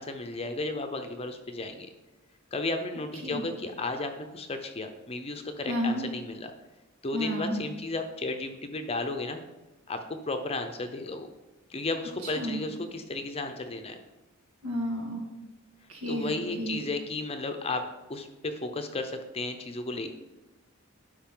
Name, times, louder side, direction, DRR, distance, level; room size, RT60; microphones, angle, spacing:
voice 1, 0.0-1.9 2.5-6.5 7.0-9.4 9.9-11.3 11.7-14.0 16.1-17.8 18.1-20.2, left 2 dB, 25° left, 7 dB, 0.6 m, -34 dB
voice 2, 5.7-6.0 7.1-7.6 12.2-12.6 14.6-15.3 15.9-16.8, equal, 90° right, 0 dB, 2.0 m, -31 dB
12.0 x 4.9 x 3.8 m, 1.1 s
head